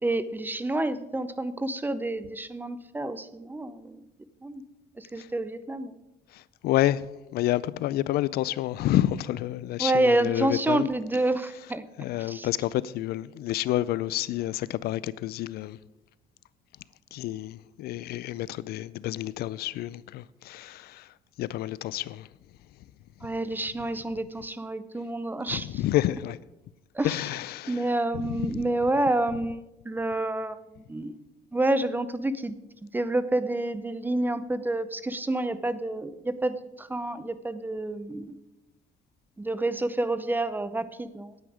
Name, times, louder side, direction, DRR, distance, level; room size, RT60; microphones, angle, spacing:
voice 1, 0.0-4.0 4.4-4.6 5.0-6.0 9.8-11.8 12.2-12.5 23.2-25.8 26.9-27.2 27.7-31.2 31.5-32.6 32.9-38.4 39.4-41.3, right 2 dB, 10° right, 0.6 m, -28 dB
voice 2, 6.3-7.1 7.3-10.9 12.0-15.8 17.1-21.1 21.4-22.3 25.5-26.4 27.0-27.9 28.1-28.4, left 14 dB, 70° left, 0.4 m, -29 dB
9.6 x 9.4 x 4.9 m
cardioid pair, 110°, 17 cm